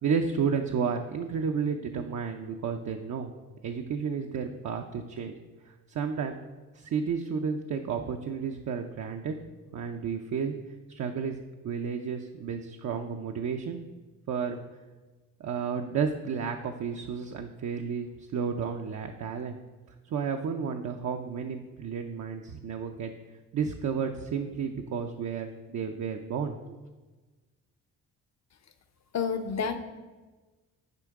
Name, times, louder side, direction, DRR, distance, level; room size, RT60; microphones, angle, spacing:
voice 1, 0.0-3.3 3.6-5.3 5.9-6.4 6.7-9.3 9.7-10.5 10.9-11.4 11.6-13.8 14.3-14.6 15.4-19.6 20.1-23.1 23.5-26.8, right 6 dB, 55° right, 4 dB, 0.6 m, -32 dB
voice 2, 29.1-29.8, left 6 dB, 50° left, 9 dB, 0.8 m, -29 dB
10.5 x 4.4 x 3.6 m, 1.3 s
supercardioid pair, 60°, 35 cm